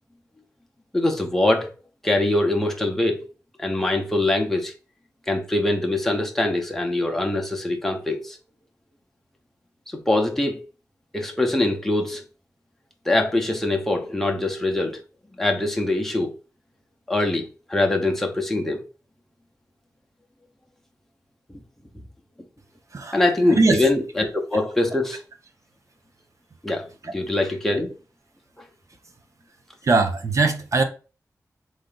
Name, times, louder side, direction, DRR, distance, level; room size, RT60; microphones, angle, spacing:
voice 1, 0.9-1.7 2.0-3.3 3.6-4.7 5.3-8.4 9.9-10.6 11.1-12.2 13.1-15.0 15.4-16.3 17.1-18.8 23.1-25.2 26.6-26.8 27.1-27.9, left 2 dB, 5° left, 0.8 m, -23 dB
voice 2, 22.9-23.8 29.8-30.8, right 3 dB, 55° right, 0.7 m, -21 dB
3.9 x 3.3 x 3.9 m
wide cardioid pair, 110°, 6 cm